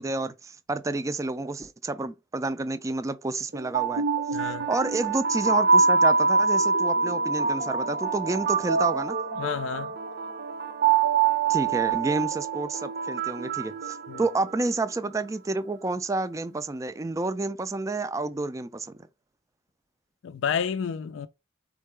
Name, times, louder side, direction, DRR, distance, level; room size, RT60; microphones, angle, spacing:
voice 1, 0.0-4.0 4.7-9.2 11.5-19.0, right 2 dB, 15° right, 0.3 m, -29 dB
sound 1, 3.5-14.6, right 5 dB, 55° right, 0.6 m, -25 dB
voice 2, 4.3-4.7 9.4-9.9 14.1-14.2 20.2-21.3, left 7 dB, 75° left, 0.4 m, -30 dB
4.5 x 3.7 x 3.2 m
head